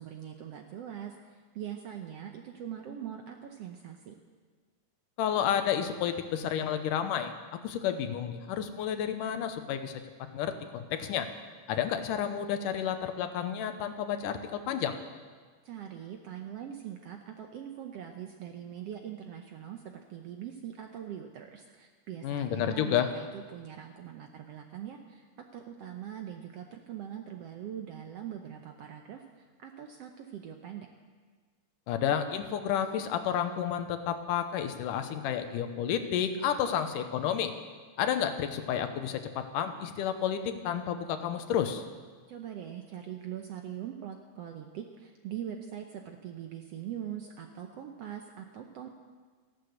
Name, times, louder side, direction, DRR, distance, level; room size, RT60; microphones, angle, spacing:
voice 1, 0.0-4.1 15.6-30.9 42.3-48.9, right 10 dB, 70° right, 4 dB, 1.5 m, -42 dB
voice 2, 5.2-9.9 10.3-11.3 11.7-15.0 22.2-23.1 31.9-37.5 38.0-41.8, left 9 dB, 85° left, 8 dB, 2.5 m, -31 dB
15.0 x 11.5 x 8.0 m, 1.5 s
omnidirectional pair, 3.7 m